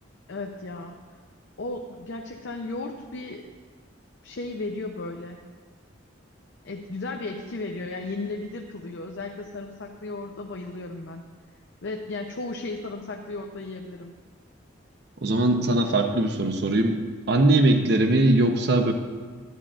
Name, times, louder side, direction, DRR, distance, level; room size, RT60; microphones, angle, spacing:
voice 1, 0.3-1.0 1.6-3.5 4.2-5.4 6.6-11.2 11.8-14.1, left 2 dB, 65° left, 2 dB, 0.5 m, -35 dB
voice 2, 15.2-17.0 17.3-18.9, right 2 dB, 55° right, 5 dB, 0.7 m, -20 dB
11.0 x 9.7 x 2.5 m, 1.5 s
head